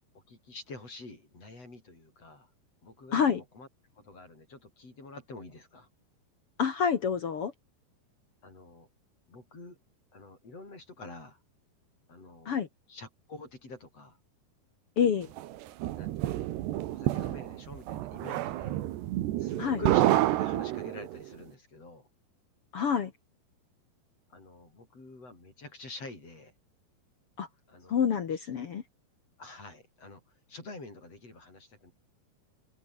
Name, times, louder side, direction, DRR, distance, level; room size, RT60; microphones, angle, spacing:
voice 1, 0.1-2.5 2.8-3.7 3.9-5.9 8.4-8.9 9.3-9.8 10.1-11.4 12.1-12.6 12.9-14.2 15.0-15.3 15.9-16.5 16.9-18.8 19.4-22.1 24.3-26.5 27.7-28.0 28.3-28.5 29.4-31.9, left 2 dB, 35° left, 9.1 m, -47 dB
voice 2, 6.6-7.5 12.4-12.7 15.0-15.3 19.6-19.8 22.7-23.1 27.4-27.5 27.9-28.8, left 7 dB, 55° left, 1.6 m, -27 dB
sound 1, 15.4-21.2, right 15 dB, 90° right, 3.4 m, -29 dB
omnidirectional pair, 4.7 m